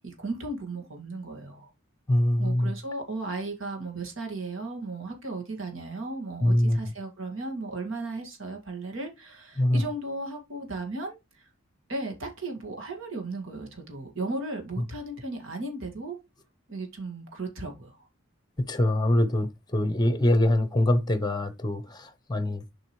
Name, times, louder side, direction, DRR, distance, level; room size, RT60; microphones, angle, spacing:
voice 1, 0.0-1.7 2.4-11.5 11.9-16.2 16.7-18.1, right 2 dB, 70° right, 2.0 m, -35 dB
voice 2, 2.1-2.7 6.4-6.8 9.6-9.8 18.7-22.6, left 1 dB, 20° left, 0.8 m, -24 dB
7.7 x 5.2 x 3.1 m
head